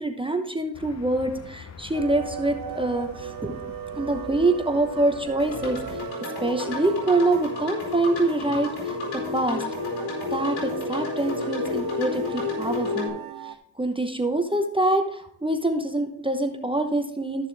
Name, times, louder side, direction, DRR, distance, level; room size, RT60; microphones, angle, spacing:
voice 1, 0.0-3.6 3.9-6.0 6.4-9.6 10.3-13.2 13.4-17.5, right 2 dB, 10° right, 5 dB, 0.9 m, -25 dB
sound 1, 0.7-6.0, left 5 dB, 35° left, 0.9 m, -44 dB
sound 2, 1.9-13.5, right 10 dB, 50° right, 0.7 m, -38 dB
sound 3, 5.4-13.1, left 4 dB, 85° left, 4.5 m, -31 dB
13.5 x 6.7 x 3.4 m, 0.76 s
cardioid pair, 90°, 45 cm